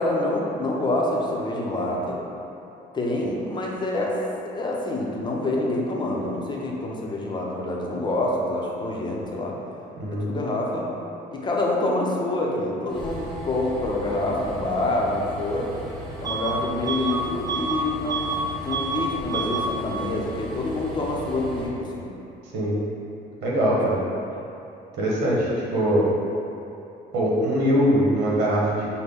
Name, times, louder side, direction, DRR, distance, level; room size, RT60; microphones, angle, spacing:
voice 1, 0.0-2.2 2.9-9.6 10.1-10.9 11.3-15.7 16.2-22.1 23.7-23.8, left 2 dB, 25° left, -2 dB, 0.7 m, -27 dB
voice 2, 10.0-10.3 22.5-22.7 23.4-24.0 25.0-26.1 27.1-28.9, equal, 80° right, -5 dB, 1.0 m, -22 dB
Train, 12.9-21.7, left 1 dB, 5° left, 1.0 m, -38 dB
Bus / Alarm, 16.2-16.6 16.9-18.4 18.7-19.0 19.3-19.7, right 4 dB, 20° right, 0.5 m, -28 dB
5.7 x 2.2 x 3.5 m, 2.9 s
cardioid pair, 110°, 17 cm